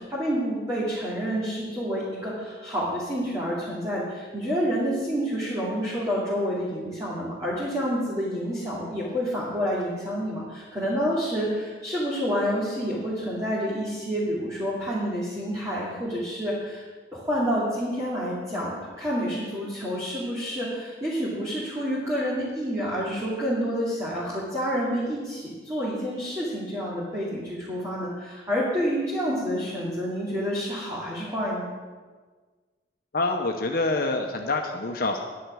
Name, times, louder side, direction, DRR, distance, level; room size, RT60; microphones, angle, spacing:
voice 1, 0.0-16.8 17.1-31.6, equal, 20° right, -8 dB, 2.5 m, -28 dB
voice 2, 33.1-35.2, left 2 dB, 55° left, 3 dB, 0.9 m, -26 dB
10.5 x 10.0 x 6.3 m, 1.4 s
head